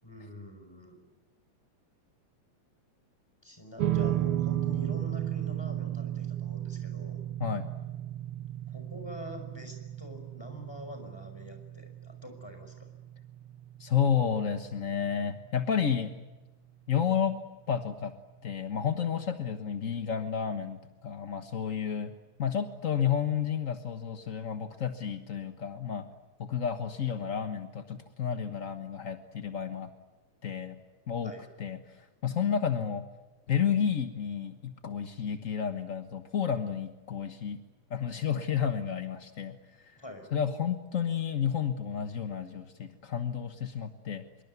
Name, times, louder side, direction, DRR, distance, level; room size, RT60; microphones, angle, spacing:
voice 1, 0.0-1.0 3.4-7.2 8.3-12.9 31.2-31.5 40.0-40.3, equal, 10° left, 6 dB, 5.6 m, -45 dB
sound 1, 3.8-16.3, right 12 dB, 55° right, 1.9 m, -35 dB
voice 2, 13.8-16.1 16.9-17.3 17.7-18.1 18.4-22.1 22.4-26.1 26.4-29.9 30.4-30.8 31.1-31.3 31.6-33.0 33.5-37.6 37.9-39.6 39.8-40.0 40.3-44.3, left 8 dB, 55° left, 8 dB, 0.8 m, -31 dB
25.5 x 23.0 x 9.5 m, 1.1 s
omnidirectional pair, 3.4 m